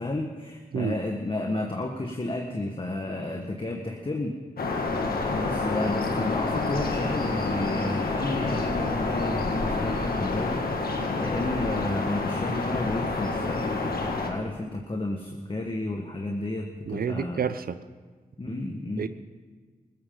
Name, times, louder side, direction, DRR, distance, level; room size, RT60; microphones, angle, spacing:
voice 1, 0.0-4.3 5.3-10.6 11.2-17.4 18.4-19.1, left 2 dB, 35° left, 2 dB, 1.6 m, -31 dB
sound 1, 4.6-14.3, left 3 dB, 75° left, 1.9 m, -28 dB
voice 2, 16.9-17.8 19.0-19.1, right 7 dB, 75° right, 12 dB, 0.7 m, -29 dB
20.0 x 15.5 x 3.9 m, 1.5 s
cardioid pair, 50°, 16 cm